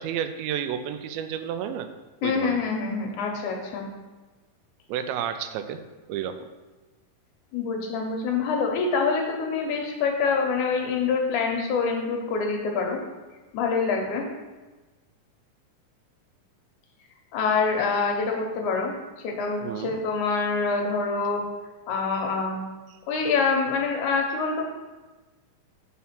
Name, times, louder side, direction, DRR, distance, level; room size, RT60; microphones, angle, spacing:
voice 1, 0.0-1.9 2.2-2.7 4.9-5.8 6.1-6.5 19.6-20.0 22.9-23.0, right 9 dB, 90° right, 9 dB, 2.4 m, -31 dB
voice 2, 2.2-3.9 7.5-13.0 13.5-14.2 17.3-18.9 19.2-21.4 21.9-22.6 23.1-24.6, left 4 dB, 75° left, 1 dB, 1.9 m, -25 dB
5.6 x 4.3 x 5.8 m, 1.2 s
omnidirectional pair, 4.1 m